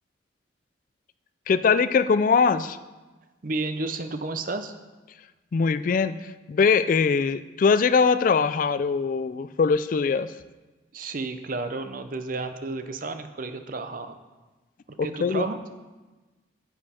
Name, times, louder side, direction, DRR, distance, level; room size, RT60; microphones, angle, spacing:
voice 1, 1.5-2.8 5.5-10.3 15.0-15.4, left 5 dB, 45° left, 13 dB, 0.3 m, -22 dB
voice 2, 3.4-4.7 10.9-14.2 15.0-15.6, right 3 dB, 45° right, 9 dB, 0.6 m, -31 dB
9.8 x 8.2 x 4.3 m, 1.2 s
head